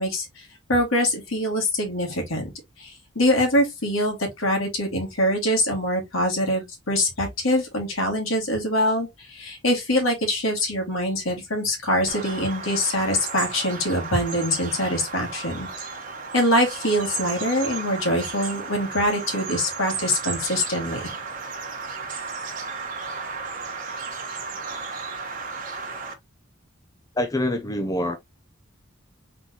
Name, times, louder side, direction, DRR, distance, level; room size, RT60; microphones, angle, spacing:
voice 1, 0.0-2.5 2.8-15.7 16.3-21.1, left 1 dB, 75° left, 2.1 m, -24 dB
Bird vocalization bird call bird song, 12.1-26.1, right 4 dB, 40° right, 1.2 m, -34 dB
voice 2, 27.2-28.2, left 1 dB, 15° left, 0.5 m, -25 dB
4.0 x 3.9 x 2.8 m
head